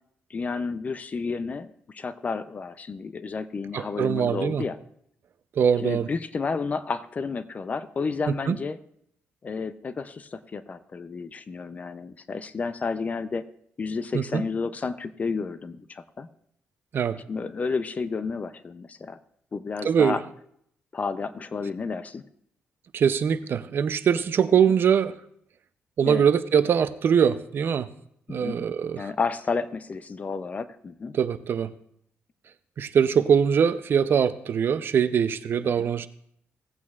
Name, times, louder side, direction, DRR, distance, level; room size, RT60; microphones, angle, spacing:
voice 1, 0.3-4.8 5.8-8.8 9.4-13.4 13.8-16.3 17.3-19.2 19.5-20.2 20.9-22.2 26.0-26.2 28.3-28.6 29.0-31.2 35.6-35.9, left 4 dB, 35° left, 13 dB, 0.4 m, -31 dB
voice 2, 3.7-4.6 5.6-6.1 8.5-8.6 14.1-14.4 16.9-17.2 19.8-20.2 22.9-25.1 26.0-27.9 28.3-29.1 31.1-31.7 32.8-36.1, right 7 dB, 55° right, 13 dB, 0.5 m, -22 dB
17.0 x 8.4 x 2.4 m, 0.70 s
cardioid pair, 105°, 4 cm